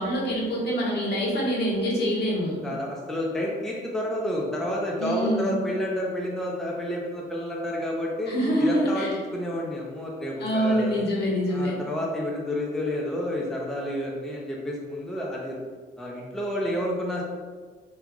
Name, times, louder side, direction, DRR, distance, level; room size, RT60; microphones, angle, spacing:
voice 1, 0.0-2.6 5.0-5.5 8.3-9.1 10.4-11.8, equal, 55° left, -4 dB, 1.1 m, -25 dB
voice 2, 2.6-11.0 11.5-15.6 16.0-17.2, left 1 dB, ahead, -3 dB, 0.5 m, -30 dB
3.0 x 2.4 x 3.6 m, 1.5 s
cardioid pair, 90°, 20 cm